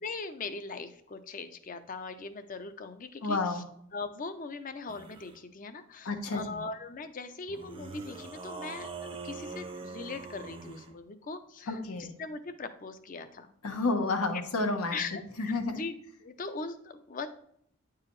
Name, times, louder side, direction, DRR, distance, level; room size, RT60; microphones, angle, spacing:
voice 1, 0.0-3.6 3.9-11.8 12.2-13.5 14.9-15.9 16.2-17.3, left 4 dB, 40° left, 10 dB, 0.5 m, -40 dB
voice 2, 3.2-3.7 6.0-6.6 11.7-12.1 13.6-15.0 15.4-15.8, left 3 dB, 90° left, 5 dB, 1.1 m, -30 dB
sound 1, 4.9-5.4 7.5-10.9, right 3 dB, 25° right, 0.6 m, -43 dB
9.4 x 4.8 x 3.1 m, 0.69 s
head